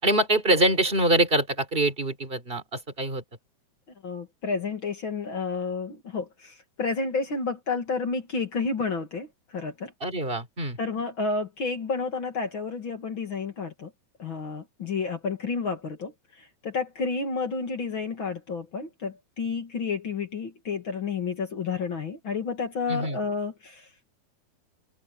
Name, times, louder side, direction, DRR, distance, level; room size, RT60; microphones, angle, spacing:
voice 1, 0.0-3.2 10.0-10.8 22.9-23.2, right 1 dB, 15° right, 3.7 m, -24 dB
voice 2, 4.0-9.3 9.5-9.9 10.8-13.9 14.2-16.1 16.6-23.8, left 4 dB, 40° left, 2.3 m, -30 dB
omnidirectional pair, 4.4 m